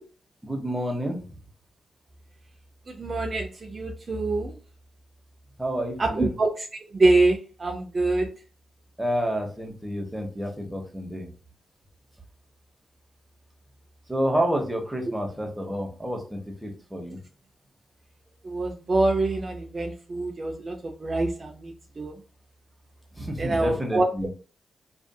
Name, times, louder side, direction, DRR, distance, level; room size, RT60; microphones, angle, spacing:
voice 1, 0.4-1.2 5.6-6.3 9.0-11.3 14.1-17.2 23.1-24.3, equal, 10° right, 1 dB, 1.0 m, -29 dB
voice 2, 2.9-4.6 6.0-6.7 6.9-8.3 18.4-22.2 23.4-24.1, right 2 dB, 45° right, 2 dB, 0.5 m, -25 dB
2.6 x 2.4 x 2.3 m, 0.38 s
cardioid pair, 55°, 0 cm